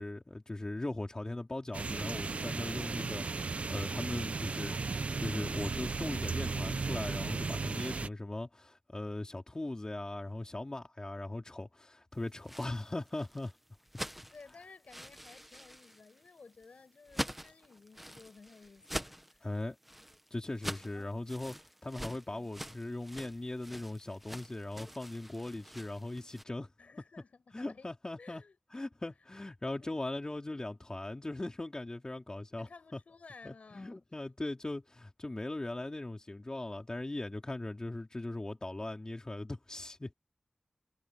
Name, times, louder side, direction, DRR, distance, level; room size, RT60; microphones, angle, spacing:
voice 1, 0.0-4.8 5.2-13.5 19.4-19.7 20.3-21.5 21.8-26.7 27.5-28.4 28.7-33.0 33.4-40.1, left 2 dB, 30° left, 3.2 m, -39 dB
sound 1, 1.7-8.1, right 4 dB, 70° right, 0.8 m, -35 dB
sound 2, 12.3-26.4, equal, 5° right, 1.4 m, -45 dB
voice 2, 14.3-19.4 20.3-20.5 20.9-21.2 22.3-22.6 26.8-28.6 29.8-30.0 32.6-34.1, left 4 dB, 90° left, 6.8 m, -56 dB
wide cardioid pair, 80°, 2 cm